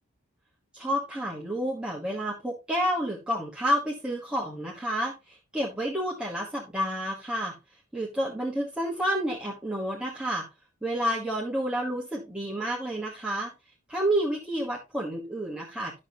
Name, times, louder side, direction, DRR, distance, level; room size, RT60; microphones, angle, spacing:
voice 1, 0.7-7.5 7.9-10.4 10.8-13.5 13.9-16.0, equal, 5° right, -4 dB, 1.2 m, -30 dB
11.0 x 6.4 x 2.8 m, 0.26 s
head